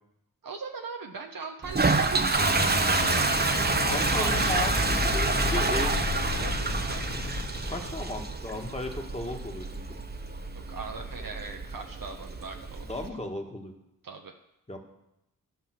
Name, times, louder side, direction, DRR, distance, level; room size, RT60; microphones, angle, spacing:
voice 1, 0.4-2.5 2.9-3.3 3.9-4.6 5.6-7.0 10.5-12.9 14.0-14.3, right 4 dB, 65° right, 3 dB, 1.0 m, -39 dB
Toilet flush, 1.6-13.1, right 3 dB, 25° right, 0.9 m, -28 dB
sound 1, 2.4-8.5, left 2 dB, 65° left, 2.2 m, -31 dB
voice 2, 3.8-6.0 7.7-9.8 12.8-13.7 14.7-14.8, left 2 dB, 20° left, 2 dB, 1.9 m, -35 dB
11.5 x 5.7 x 6.2 m, 0.87 s
cardioid pair, 40°, 36 cm